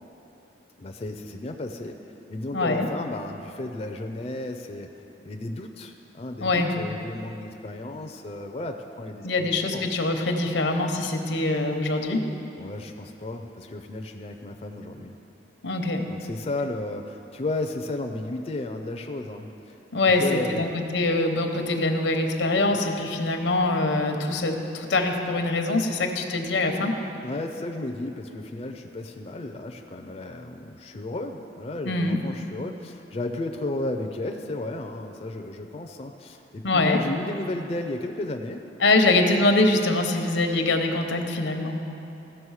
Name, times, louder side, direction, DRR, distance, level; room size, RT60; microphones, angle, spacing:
voice 1, 0.8-2.0 2.3-4.9 5.2-9.9 12.6-15.1 16.1-19.8 20.2-20.8 27.2-38.6, left 2 dB, 35° left, 4 dB, 0.4 m, -33 dB
voice 2, 2.5-2.9 6.4-6.7 9.2-12.3 15.6-16.1 19.9-20.7 20.9-27.0 31.8-32.2 36.6-37.0 38.8-41.8, left 2 dB, 85° left, 5 dB, 0.9 m, -23 dB
15.5 x 6.1 x 4.8 m, 2.9 s
head